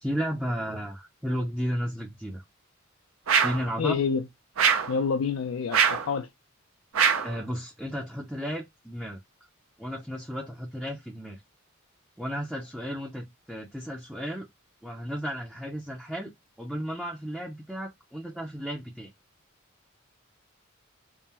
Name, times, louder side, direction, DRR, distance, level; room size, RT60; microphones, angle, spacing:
voice 1, 0.0-2.4 3.4-4.0 7.2-9.2 9.8-11.4 12.2-14.5 14.8-16.3 16.6-19.1, equal, 5° right, 0.5 m, -33 dB
sound 1, 3.3-3.7 4.6-5.0 5.7-6.1 6.9-7.4, right 6 dB, 85° right, 0.7 m, -23 dB
voice 2, 3.8-4.2 4.9-6.3, left 6 dB, 70° left, 0.4 m, -27 dB
3.7 x 2.0 x 4.1 m
head